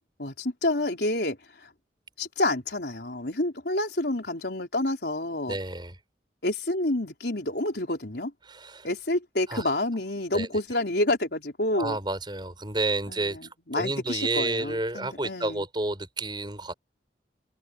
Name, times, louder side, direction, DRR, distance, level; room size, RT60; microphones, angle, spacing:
voice 1, 0.2-1.7 2.2-5.6 6.4-8.3 8.8-12.0 13.1-15.7, left 1 dB, 70° left, 3.9 m, -29 dB
voice 2, 5.5-5.9 8.5-8.9 9.5-9.6 10.3-10.5 11.7-13.4 13.7-16.7, right 2 dB, 25° right, 6.5 m, -30 dB
head